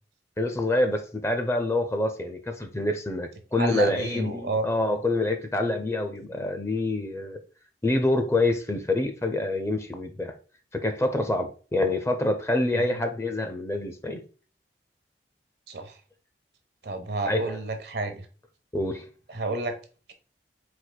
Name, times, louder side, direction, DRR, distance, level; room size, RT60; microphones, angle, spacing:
voice 1, 0.4-7.4 7.8-10.3 10.7-14.2 17.3-17.6 18.7-19.1, left 2 dB, 15° left, 0.6 m, -26 dB
voice 2, 3.5-4.7 12.7-13.0 15.7-16.0 16.8-18.3 19.3-19.8, right 2 dB, 65° right, 0.8 m, -31 dB
4.5 x 2.5 x 4.0 m
head